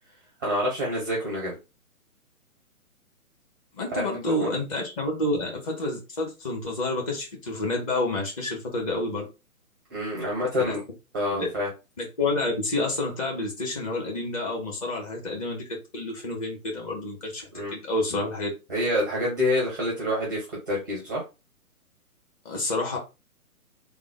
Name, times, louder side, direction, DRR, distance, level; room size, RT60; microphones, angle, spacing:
voice 1, 0.4-1.6 3.9-4.1 4.4-4.5 9.9-10.8 11.1-11.7 17.5-17.7 18.7-21.2, left 1 dB, 15° right, -4 dB, 0.5 m, -27 dB
voice 2, 3.7-9.2 10.6-10.7 11.3-11.5 12.0-18.5 22.4-23.0, left 2 dB, 25° left, -1 dB, 0.9 m, -29 dB
3.5 x 2.1 x 3.3 m, 0.27 s
figure-of-eight pair, 130°, 44 cm